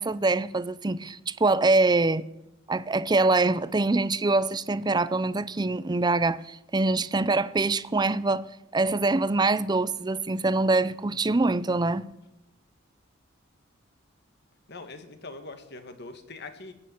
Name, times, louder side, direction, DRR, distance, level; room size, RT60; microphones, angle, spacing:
voice 1, 0.0-2.2 2.7-8.5 8.7-12.0, right 3 dB, 20° right, 0.6 m, -24 dB
voice 2, 14.7-16.7, left 3 dB, 55° left, 2.0 m, -42 dB
16.5 x 8.9 x 9.4 m
head